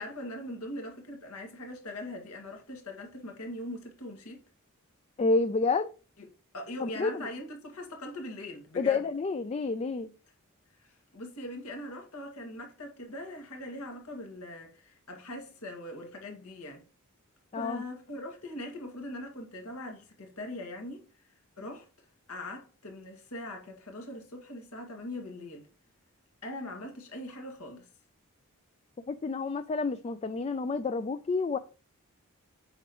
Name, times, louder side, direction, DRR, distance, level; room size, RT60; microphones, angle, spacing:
voice 1, 0.0-4.4 6.5-9.0 10.8-16.8 17.5-21.0 21.6-21.9 22.3-25.7 26.4-27.9, left 1 dB, 75° left, 2.1 m, -41 dB
voice 2, 5.2-5.9 6.8-7.3 8.8-10.1 17.5-17.8 29.1-31.6, left 4 dB, 30° left, 0.3 m, -29 dB
7.9 x 6.1 x 3.0 m
head